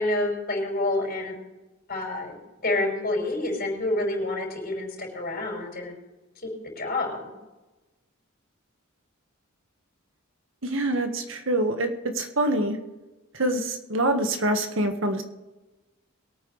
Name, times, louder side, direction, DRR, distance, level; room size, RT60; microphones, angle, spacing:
voice 1, 0.0-1.4 1.9-2.4 2.6-5.9 6.4-6.5 6.8-7.3, left 2 dB, 50° left, 0 dB, 5.4 m, -28 dB
voice 2, 10.6-11.9 12.1-12.8 13.3-15.2, right 1 dB, 65° right, 6 dB, 1.6 m, -25 dB
22.5 x 9.3 x 3.3 m, 1.1 s
head